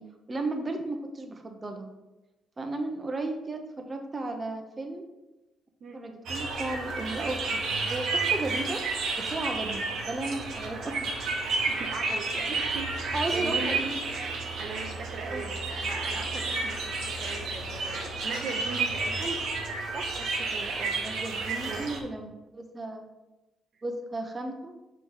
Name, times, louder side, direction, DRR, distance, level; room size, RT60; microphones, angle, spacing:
voice 1, 0.0-1.9 2.6-5.0 5.9-8.8 9.2-11.1 13.1-13.9 15.3-15.4 20.5-23.0 23.8-24.7, right 2 dB, 30° right, 4 dB, 0.8 m, -35 dB
sound 1, 6.3-22.0, right 3 dB, 75° right, 1.3 m, -31 dB
voice 2, 11.7-13.7 14.6-19.4 19.9-20.4 21.4-21.8, right 4 dB, 60° right, 3 dB, 0.8 m, -39 dB
6.4 x 3.3 x 5.5 m, 1.0 s
cardioid pair, 90°, 0 cm